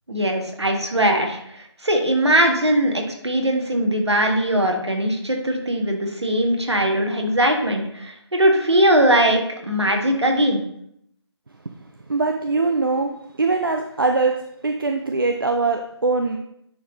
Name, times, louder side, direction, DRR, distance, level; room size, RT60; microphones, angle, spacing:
voice 1, 0.1-10.6, right 1 dB, 70° right, 2 dB, 1.5 m, -20 dB
voice 2, 12.1-14.4 14.6-16.4, right 3 dB, 50° right, 4 dB, 0.5 m, -22 dB
9.9 x 4.0 x 3.0 m, 0.73 s
figure-of-eight pair, 155°, 15 cm